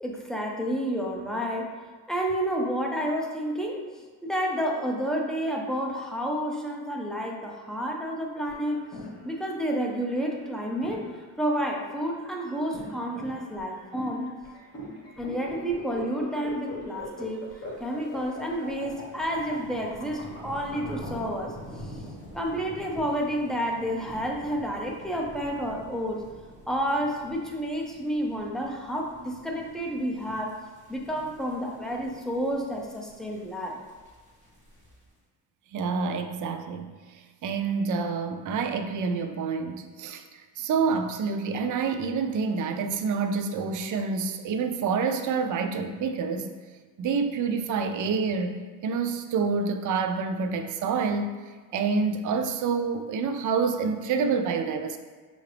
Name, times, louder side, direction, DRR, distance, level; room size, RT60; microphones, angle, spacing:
voice 1, 0.0-1.8 2.1-8.9 9.3-11.1 11.4-14.3 15.2-17.5 17.8-22.0 22.3-26.2 26.7-30.6 30.9-33.8, equal, ahead, -1 dB, 0.5 m, -30 dB
sound 1, 8.5-20.9, left 1 dB, 35° left, 1.3 m, -42 dB
sound 2, 17.6-35.1, equal, 20° right, 1.3 m, -46 dB
voice 2, 35.7-37.0 37.4-46.5 47.0-51.3 51.7-55.0, right 5 dB, 50° right, 6 dB, 0.5 m, -27 dB
5.5 x 2.6 x 3.3 m, 1.4 s
cardioid pair, 105°, 40 cm